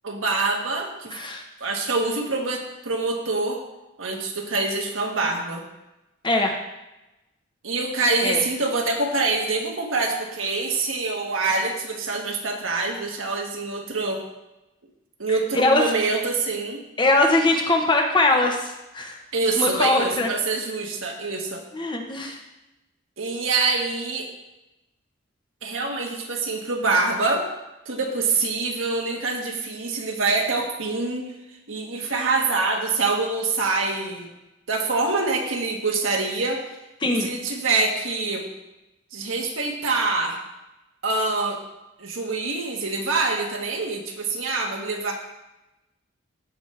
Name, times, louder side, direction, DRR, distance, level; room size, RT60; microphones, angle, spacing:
voice 1, 0.0-1.1 1.6-3.6 4.0-5.6 7.6-14.2 15.2-16.8 19.3-21.6 23.2-24.3 25.6-27.5 27.8-31.3 31.7-34.3 34.7-36.6 37.1-38.5 39.1-40.4 41.0-41.6 42.0-45.1, right 3 dB, 75° right, 1 dB, 1.4 m, -25 dB
voice 2, 1.1-1.4 6.2-6.6 8.2-8.4 15.5-16.1 17.0-19.2 19.6-20.3 21.7-22.4 37.0-37.3, left 2 dB, 25° left, 2 dB, 0.9 m, -21 dB
14.5 x 5.2 x 3.3 m, 0.97 s
head